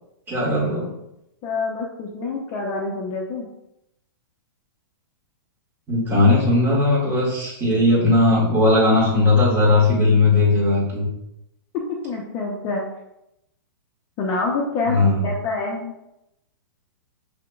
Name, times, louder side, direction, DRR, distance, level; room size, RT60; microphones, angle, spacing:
voice 1, 0.3-0.9 5.9-11.1 14.8-15.2, left 2 dB, 20° right, -6 dB, 1.6 m, -18 dB
voice 2, 1.4-3.5 12.0-12.9 14.2-15.9, left 3 dB, 30° left, -1 dB, 0.6 m, -26 dB
6.6 x 2.9 x 2.3 m, 0.85 s
hypercardioid pair, 150°, 12 cm